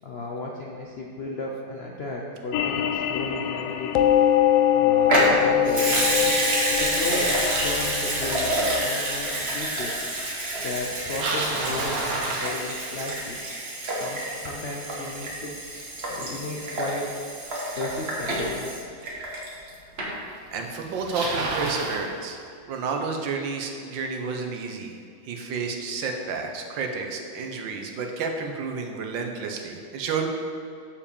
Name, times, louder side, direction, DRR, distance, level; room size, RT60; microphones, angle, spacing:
voice 1, 0.0-4.1 4.7-10.0 10.6-13.4 13.9-15.6 16.0-17.1 17.8-18.8, left 2 dB, 65° left, -1 dB, 0.6 m, -35 dB
sound 1, 2.5-9.4, left 10 dB, 90° left, 1.3 m, -24 dB
Water tap faucet / Sink (filling or washing) / Liquid, 5.0-19.7 20.0-20.1, right 1 dB, 35° right, 1.5 m, -28 dB
Bicycle, 10.8-13.2 18.2-18.3 19.2-19.3 20.3-20.4 20.6-22.1, right 3 dB, 55° right, 1.5 m, -30 dB
voice 2, 20.5-22.4 22.7-24.9 25.3-30.3, right 4 dB, 85° right, 3 dB, 1.6 m, -30 dB
7.0 x 5.0 x 6.8 m, 2.3 s
omnidirectional pair, 2.0 m